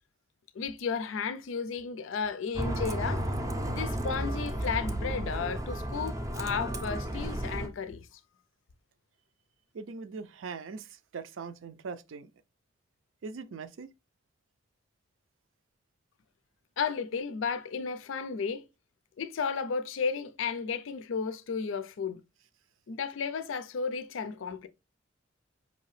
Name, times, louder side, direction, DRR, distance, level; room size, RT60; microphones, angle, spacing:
voice 1, 0.5-3.3 3.7-8.1 16.8-18.6 19.2-22.2 22.9-24.7, left 5 dB, 80° left, 0.4 m, -33 dB
Bus, 2.5-7.7, right 1 dB, 15° right, 0.4 m, -33 dB
voice 2, 9.7-12.3 13.2-13.9, right 5 dB, 85° right, 0.4 m, -41 dB
5.0 x 2.8 x 3.1 m
head